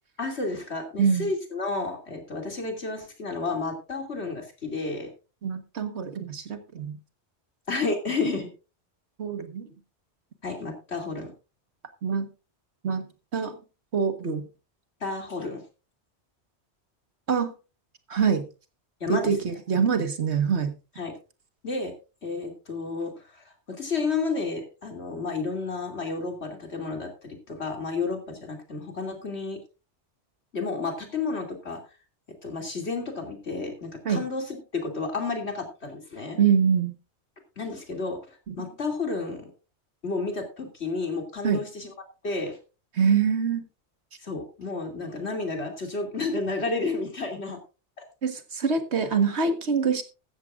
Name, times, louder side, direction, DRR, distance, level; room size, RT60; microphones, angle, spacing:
voice 1, 0.2-5.1 7.7-8.5 10.4-11.3 15.0-15.6 19.0-19.3 21.0-21.1 21.6-21.9 22.2-29.6 30.5-31.8 32.4-36.4 37.6-39.5 40.0-41.9 42.2-42.6 44.2-47.6, left 3 dB, 70° left, 3 dB, 3.1 m, -31 dB
voice 2, 1.0-1.3 5.4-7.0 9.2-9.7 12.0-12.3 12.8-13.1 13.3-13.6 13.9-14.5 17.3-17.5 18.1-18.5 19.1-20.7 34.1-34.2 36.4-36.9 38.5-38.6 41.4-41.6 43.0-43.6 48.2-50.0, right 6 dB, 75° right, 8 dB, 1.8 m, -24 dB
14.5 x 13.5 x 2.5 m, 0.31 s
omnidirectional pair, 1.2 m